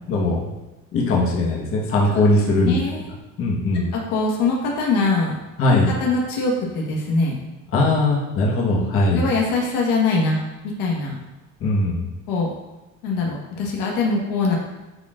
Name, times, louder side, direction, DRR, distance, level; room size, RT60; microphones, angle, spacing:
voice 1, 0.1-0.4 0.9-2.7 3.4-3.9 5.6-5.9 7.7-9.2 11.6-12.1, left 2 dB, 45° left, -4 dB, 1.4 m, -20 dB
voice 2, 2.6-3.1 3.7-5.3 5.7-7.4 8.6-10.4 10.8-11.1 12.3-12.5 13.0-14.6, left 3 dB, 90° left, -2 dB, 1.5 m, -23 dB
9.6 x 4.4 x 2.6 m, 1.0 s
cardioid pair, 140°, 32 cm